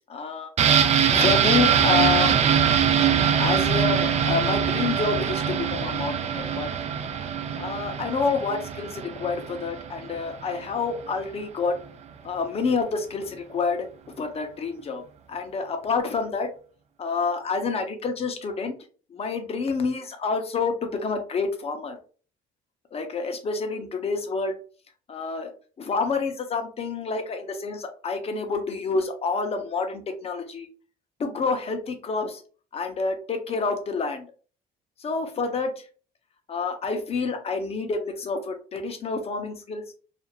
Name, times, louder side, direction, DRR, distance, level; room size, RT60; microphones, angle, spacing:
voice 1, 0.1-0.5 1.0-2.3 3.2-6.7 7.6-11.8 12.2-13.9 14.2-15.0 15.3-16.5 17.0-18.7 19.1-22.0 22.9-24.6 25.1-25.5 25.8-30.7 31.2-32.4 32.7-34.3 35.0-35.8 36.5-39.8, left 4 dB, 35° left, 6 dB, 0.6 m, -28 dB
sound 1, 0.6-10.2 10.5-10.6, right 8 dB, 40° right, 0.4 m, -23 dB
2.5 x 2.4 x 2.8 m, 0.39 s
cardioid pair, 110°, 17 cm